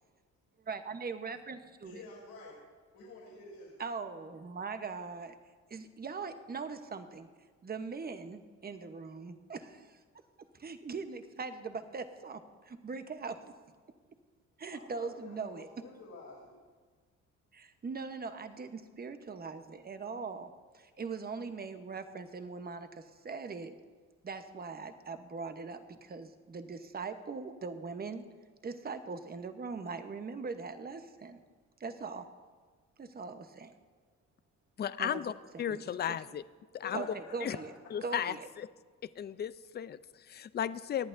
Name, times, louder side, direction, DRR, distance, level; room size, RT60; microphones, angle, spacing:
voice 1, 0.7-2.0 3.8-5.3 5.7-7.3 7.6-10.0 10.5-12.4 12.6-13.5 14.6-15.7 17.5-23.8 24.2-28.2 28.6-31.4 31.8-32.3 33.0-33.7 35.0-35.2 35.5-36.2 36.9-37.7 38.0-38.5, right 4 dB, 30° right, 8 dB, 1.0 m, -41 dB
voice 2, 1.8-2.6 2.9-3.7 14.7-16.6 36.8-38.0, left 3 dB, 75° left, -5 dB, 3.3 m, -49 dB
voice 3, 34.8-35.3 35.6-36.4 36.7-37.0 37.4-37.6 37.9-38.7 39.2-41.1, left 9 dB, 35° left, 16 dB, 0.4 m, -35 dB
18.0 x 11.0 x 2.6 m, 1.5 s
cardioid pair, 90°, 30 cm